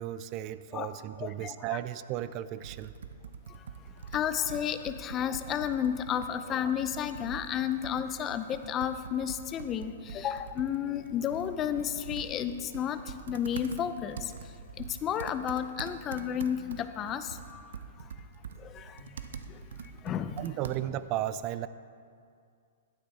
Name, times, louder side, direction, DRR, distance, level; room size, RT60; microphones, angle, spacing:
voice 1, 0.0-2.9 20.4-21.7, right 13 dB, 35° right, 14 dB, 0.4 m, -35 dB
voice 2, 1.2-1.8 4.1-13.0 13.3-14.2 14.8-17.6 18.7-18.8 20.0-20.3, left 9 dB, 25° left, 11 dB, 0.6 m, -32 dB
Computer keyboard, 2.6-21.1, right 6 dB, 75° right, 0.8 m, -45 dB
12.0 x 10.0 x 4.2 m, 2.3 s
hypercardioid pair, 145°, 0 cm